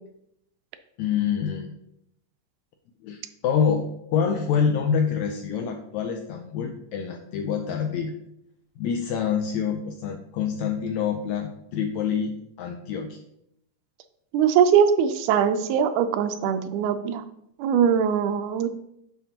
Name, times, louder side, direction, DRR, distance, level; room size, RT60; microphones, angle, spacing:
voice 1, 1.0-1.7 3.0-8.1 8.8-13.2, left 7 dB, 85° left, 4 dB, 1.6 m, -26 dB
voice 2, 14.3-17.2 17.6-18.7, right 8 dB, 80° right, 8 dB, 2.0 m, -21 dB
10.5 x 4.2 x 2.8 m, 0.77 s
omnidirectional pair, 3.7 m